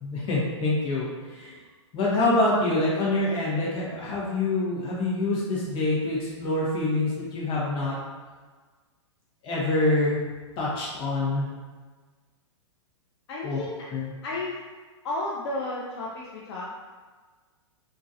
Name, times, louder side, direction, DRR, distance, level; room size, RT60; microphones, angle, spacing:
voice 1, 0.0-1.1 1.3-1.5 1.9-7.9 9.4-10.2 10.6-11.5 13.4-13.6 13.9-14.1, left 2 dB, 30° left, -6 dB, 1.2 m, -26 dB
voice 2, 13.3-14.0 14.2-14.6 15.0-16.7, left 2 dB, 60° left, -4 dB, 0.5 m, -32 dB
3.6 x 2.7 x 2.5 m, 1.4 s
hypercardioid pair, 120°, 16 cm